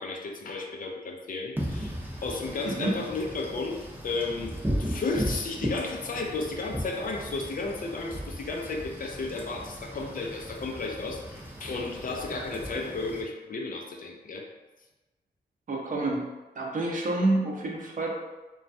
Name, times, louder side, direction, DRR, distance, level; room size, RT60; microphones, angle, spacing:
voice 1, 0.0-1.9 2.2-4.5 4.8-14.5, left 3 dB, 55° left, 1 dB, 0.4 m, -33 dB
Wind / Rain, 1.6-13.2, equal, 10° right, 0.6 m, -36 dB
voice 2, 15.7-16.3 16.6-18.2, right 2 dB, 50° right, -1 dB, 0.6 m, -28 dB
3.1 x 2.2 x 2.6 m, 1.1 s
wide cardioid pair, 100°, 17 cm